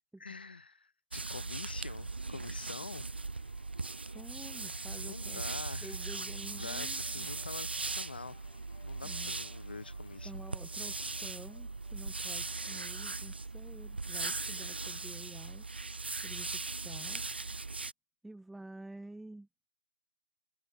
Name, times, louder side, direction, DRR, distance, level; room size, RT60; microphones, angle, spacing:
voice 1, 0.2-3.1 5.0-8.4 8.8-10.4, left 4 dB, 60° left, 1.1 m, -46 dB
sound 1, 1.1-17.9, right 3 dB, 65° right, 0.7 m, -39 dB
sound 2, 2.9-13.9, left 15 dB, 25° left, 3.5 m, -65 dB
voice 2, 4.1-5.4 5.8-7.3 9.0-9.3 10.2-15.6 16.2-17.2 18.2-19.5, right 2 dB, ahead, 1.5 m, -50 dB
figure-of-eight pair, 145°, 6 cm